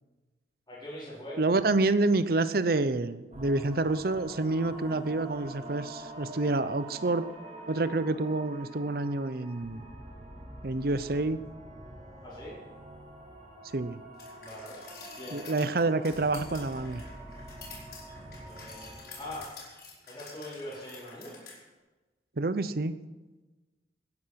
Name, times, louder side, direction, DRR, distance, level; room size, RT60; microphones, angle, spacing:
voice 1, 0.7-1.4 12.2-12.6 14.4-14.8 15.1-15.4 18.4-19.5 20.1-21.4, left 1 dB, 20° left, -10 dB, 4.5 m, -42 dB
voice 2, 1.4-7.3 7.7-9.8 10.6-11.4 13.7-14.0 15.3-17.0 22.4-22.9, right 2 dB, 55° right, 13 dB, 0.7 m, -28 dB
sound 1, 3.3-19.5, right 1 dB, 35° right, 4.4 m, -46 dB
sound 2, 14.2-21.6, left 4 dB, 55° left, 5.4 m, -49 dB
17.5 x 10.5 x 5.8 m, 1.2 s
head